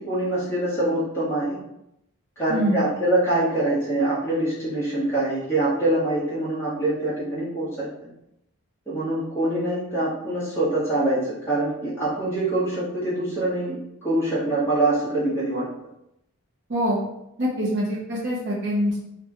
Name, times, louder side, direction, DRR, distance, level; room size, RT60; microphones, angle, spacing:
voice 1, 0.0-1.6 2.4-7.9 8.9-15.7, right 1 dB, 10° left, -9 dB, 1.2 m, -24 dB
voice 2, 16.7-17.0 17.4-19.0, equal, 50° right, -6 dB, 0.9 m, -24 dB
2.9 x 2.4 x 3.5 m, 0.82 s
head